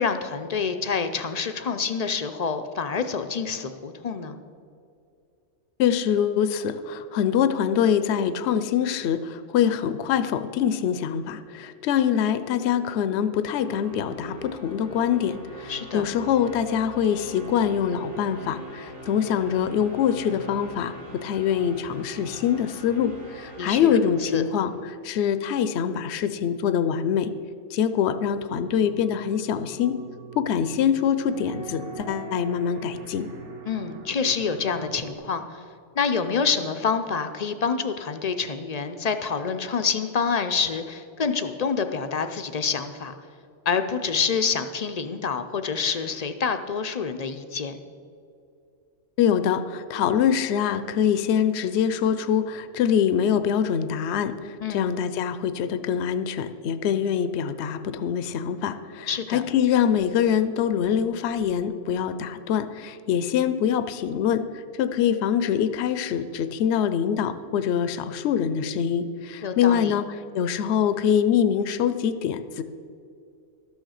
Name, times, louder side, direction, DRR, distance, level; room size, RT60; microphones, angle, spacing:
voice 1, 0.0-4.4 15.7-16.1 23.6-24.4 33.7-35.6 36.0-43.1 43.7-47.8 54.6-54.9 59.1-59.4 69.4-69.9, left 5 dB, 50° left, 8 dB, 0.5 m, -27 dB
voice 2, 5.8-27.3 27.7-30.0 30.4-33.3 49.2-70.1 70.3-72.6, left 8 dB, 70° left, 11 dB, 0.8 m, -24 dB
sound 1, 12.0-25.1, left 1 dB, 45° right, 1.3 m, -43 dB
sound 2, 28.4-35.1, right 3 dB, 75° right, 1.4 m, -41 dB
12.5 x 6.4 x 6.4 m, 2.5 s
omnidirectional pair, 1.2 m